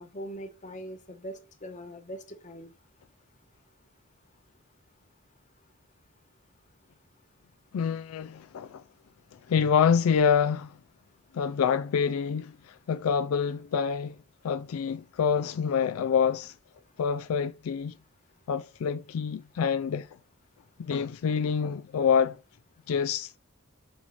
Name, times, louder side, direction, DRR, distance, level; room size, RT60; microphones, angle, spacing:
voice 1, 0.0-2.7, equal, 35° left, 1.2 m, -41 dB
voice 2, 7.7-8.8 9.5-10.8 11.3-14.2 14.4-16.5 17.0-17.9 18.5-20.1 20.8-22.4 22.9-23.4, left 7 dB, 80° left, 0.3 m, -26 dB
8.0 x 3.0 x 5.7 m
head